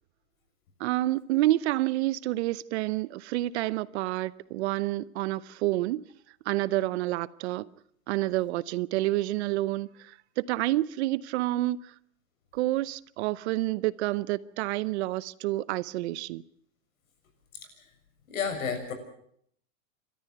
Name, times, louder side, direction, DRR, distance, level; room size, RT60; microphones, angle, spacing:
voice 1, 0.8-6.0 6.4-7.7 8.1-11.9 12.5-16.4, right 17 dB, 55° right, 0.8 m, -28 dB
voice 2, 18.3-18.9, left 6 dB, 80° left, 7.1 m, -31 dB
27.5 x 13.5 x 8.0 m
supercardioid pair, 145°, 41 cm